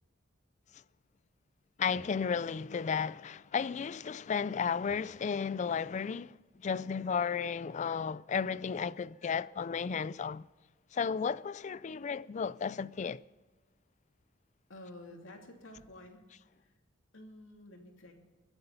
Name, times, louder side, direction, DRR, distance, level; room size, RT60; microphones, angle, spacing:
voice 1, 1.8-10.5 10.9-13.2, left 6 dB, 35° left, 0.3 m, -34 dB
voice 2, 14.7-16.3 17.1-18.1, left 1 dB, 80° left, 2.7 m, -50 dB
22.5 x 8.0 x 5.6 m
head